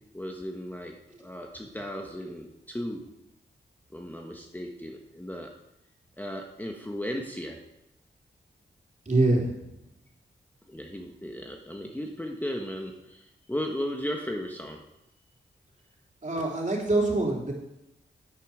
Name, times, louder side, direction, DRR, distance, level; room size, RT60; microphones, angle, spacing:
voice 1, 0.1-3.0 3.9-5.5 6.2-7.6 10.7-14.8, equal, 10° left, 1 dB, 1.3 m, -36 dB
voice 2, 9.0-9.5 16.2-17.5, right 2 dB, 40° right, -2 dB, 3.5 m, -24 dB
9.7 x 9.5 x 5.0 m, 0.87 s
cardioid pair, 55°, 20 cm